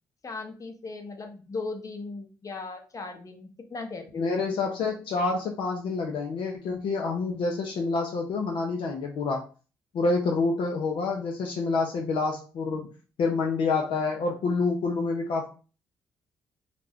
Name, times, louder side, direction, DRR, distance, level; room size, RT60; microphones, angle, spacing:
voice 1, 0.2-4.3, left 3 dB, 40° left, 4 dB, 0.8 m, -38 dB
voice 2, 4.1-9.5 9.9-12.9 13.2-15.5, left 3 dB, 70° left, 1 dB, 0.5 m, -27 dB
2.4 x 2.1 x 3.5 m, 0.35 s
supercardioid pair, 50°, 9 cm